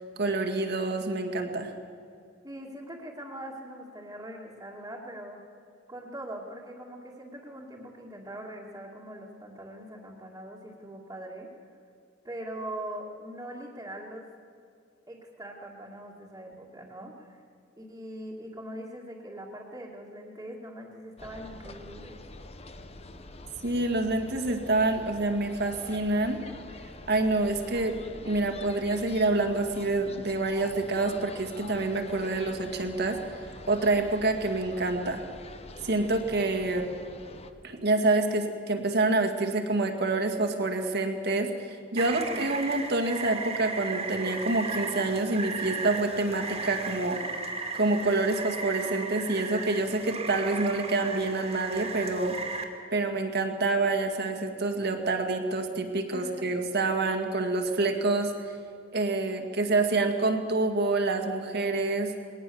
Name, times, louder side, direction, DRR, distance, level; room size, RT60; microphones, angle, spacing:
voice 1, 0.2-1.7 23.6-26.4 27.1-28.0 28.2-33.2 33.7-35.2 35.8-36.9 37.6-47.2 47.7-52.4 52.9-58.6 58.9-62.1, right 2 dB, 60° right, 5 dB, 2.1 m, -27 dB
voice 2, 2.4-5.4 5.9-11.5 12.2-14.3 15.1-17.4 17.8-22.2 42.2-42.6 56.1-56.6, right 1 dB, 15° right, -7 dB, 2.3 m, -42 dB
sound 1, 21.2-37.5, left 2 dB, 35° left, 1.1 m, -46 dB
Rain, 42.0-52.6, right 4 dB, 35° right, 2.3 m, -36 dB
21.0 x 18.5 x 7.1 m, 2.3 s
head